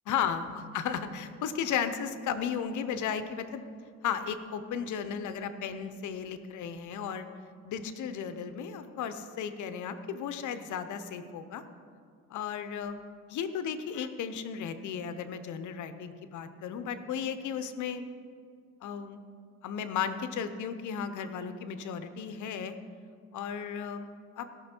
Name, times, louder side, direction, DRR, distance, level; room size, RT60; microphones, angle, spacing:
voice 1, 0.1-3.6 4.0-7.3 7.6-11.6 12.3-12.9 13.3-18.0 18.8-19.2 19.6-22.7 23.3-24.1 24.4-24.5, left 7 dB, 75° left, 10 dB, 0.8 m, -34 dB
17.0 x 6.2 x 4.5 m, 2.1 s
cardioid pair, 90°, 30 cm